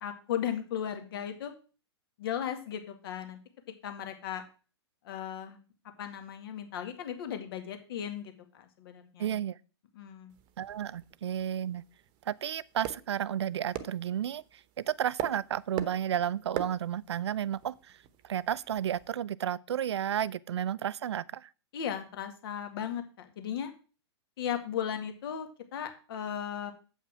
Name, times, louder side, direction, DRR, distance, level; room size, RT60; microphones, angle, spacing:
voice 1, 0.0-1.5 2.2-3.4 3.8-4.4 5.0-5.6 6.0-9.4 10.0-10.3 21.7-23.7 24.4-26.7, left 9 dB, 60° left, 2.0 m, -36 dB
voice 2, 9.2-9.6 10.6-11.8 12.3-14.4 14.8-17.7 18.2-21.5, right 10 dB, 75° right, 0.5 m, -32 dB
sound 1, 10.3-19.1, right 11 dB, 35° right, 1.0 m, -44 dB
8.1 x 5.7 x 6.1 m
hypercardioid pair, 120°, 14 cm